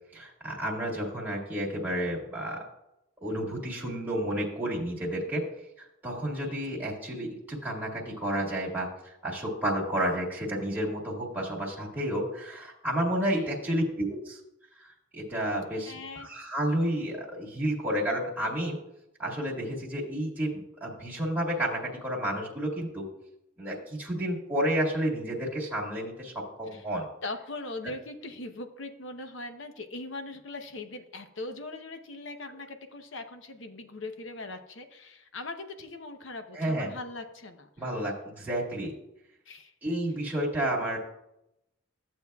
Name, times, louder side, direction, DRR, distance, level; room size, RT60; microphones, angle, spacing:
voice 1, 0.1-2.6 3.2-5.5 5.8-14.4 14.8-18.8 19.2-23.1 23.6-27.1 27.8-27.9 36.5-36.9 37.8-38.9 39.8-41.0, right 1 dB, 10° right, -6 dB, 1.9 m, -31 dB
voice 2, 6.4-6.9 13.3-13.5 15.8-16.3 26.7-26.8 27.2-38.0 39.5-39.7, left 2 dB, 60° left, 6 dB, 0.9 m, -40 dB
14.0 x 7.8 x 2.3 m, 0.85 s
head